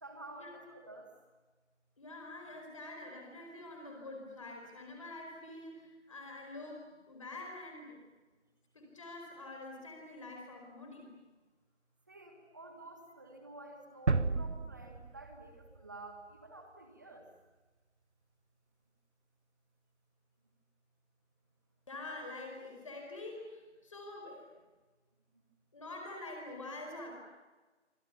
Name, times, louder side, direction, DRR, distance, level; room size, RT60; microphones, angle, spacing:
voice 1, 0.0-1.2 12.1-17.3, right 2 dB, 15° right, 3 dB, 1.7 m, -51 dB
voice 2, 2.0-8.0 8.7-11.2 12.4-12.5 21.9-24.5 25.7-27.1, left 2 dB, 25° left, 1 dB, 4.7 m, -46 dB
sound 1, 14.1-16.0, right 3 dB, 65° right, 1.4 m, -33 dB
29.5 x 25.5 x 7.0 m, 1.2 s
figure-of-eight pair, 170°, 36 cm